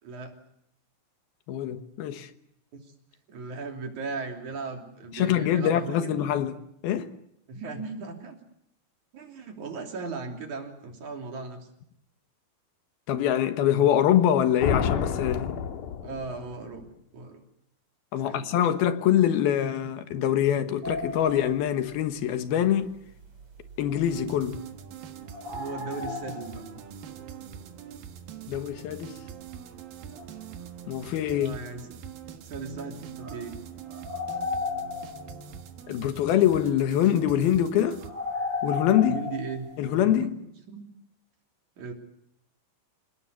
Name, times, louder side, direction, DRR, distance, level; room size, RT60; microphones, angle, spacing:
voice 1, 0.0-0.3 3.3-6.2 7.5-8.4 9.1-11.7 16.0-16.9 17.1-17.4 18.2-18.6 25.5-26.6 31.3-31.9 32.4-33.6 34.7-34.8 39.0-40.3 40.7-40.8 41.8-41.9, right 4 dB, 55° right, 4.4 m, -37 dB
voice 2, 1.5-2.3 5.1-6.6 6.8-7.1 13.1-15.6 18.1-23.0 23.8-24.6 28.5-29.2 30.9-31.5 35.9-38.0 38.6-39.2 39.8-40.4, left 10 dB, 90° left, 3.3 m, -24 dB
sound 1, 14.6-16.6, left 7 dB, 65° left, 3.0 m, -29 dB
sound 2, 20.8-22.1 23.2-24.5 25.2-26.8 27.2-27.3 28.6-28.8 29.2-29.3 29.5-29.6 30.1-30.5 31.0-31.1 31.4-31.7 32.6-32.7 33.2-35.6 38.0-40.0, left 4 dB, 40° right, 4.4 m, -35 dB
sound 3, 24.1-38.1, right 8 dB, 75° right, 3.3 m, -44 dB
28.5 x 18.5 x 8.3 m
omnidirectional pair, 4.2 m